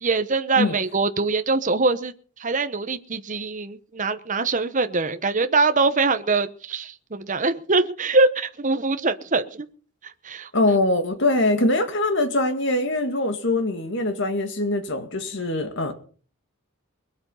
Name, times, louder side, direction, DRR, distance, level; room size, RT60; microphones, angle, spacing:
voice 1, 0.0-2.1 2.4-9.7 10.2-10.5, right 3 dB, 35° right, 0.9 m, -23 dB
voice 2, 10.5-15.9, left 2 dB, 60° left, 2.1 m, -23 dB
21.5 x 8.7 x 5.6 m
head